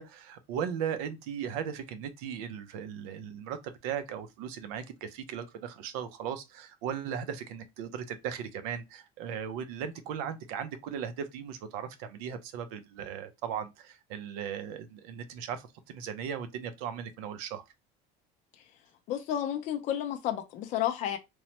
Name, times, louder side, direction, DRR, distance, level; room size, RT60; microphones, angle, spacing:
voice 1, 0.0-3.6 3.8-17.6, right 8 dB, 90° right, 0.6 m, -37 dB
voice 2, 19.1-21.2, left 11 dB, 40° left, 0.4 m, -31 dB
3.0 x 2.0 x 2.8 m
cardioid pair, 160°, 19 cm